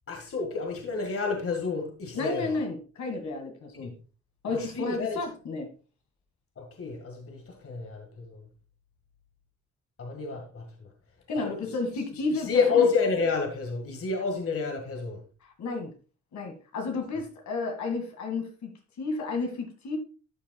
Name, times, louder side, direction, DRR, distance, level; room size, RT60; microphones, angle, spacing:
voice 1, 0.1-2.6 3.8-3.9 4.5-5.2 6.6-8.5 10.0-10.9 11.4-11.7 12.1-15.2, left 5 dB, 50° left, 1.9 m, -29 dB
voice 2, 2.1-3.9 4.4-5.6 11.3-12.9 15.6-15.9 16.3-18.7 19.0-20.0, left 3 dB, 70° left, 2.2 m, -32 dB
12.5 x 7.2 x 2.3 m
cardioid pair, 95°, 30 cm